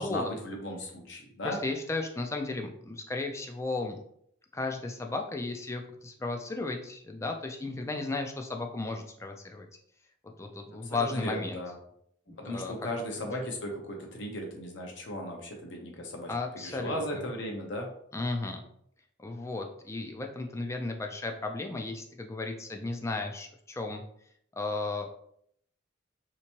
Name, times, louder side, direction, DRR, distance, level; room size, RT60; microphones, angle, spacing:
voice 1, 0.0-1.6 10.9-11.8 12.4-17.9, left 1 dB, 70° left, 1 dB, 0.8 m, -36 dB
voice 2, 1.4-4.0 4.5-9.7 10.4-11.6 12.3-12.7 16.3-17.2 18.1-18.6 19.2-24.0 24.5-25.0, left 3 dB, 15° left, 3 dB, 0.3 m, -34 dB
3.4 x 2.9 x 2.9 m, 0.68 s
head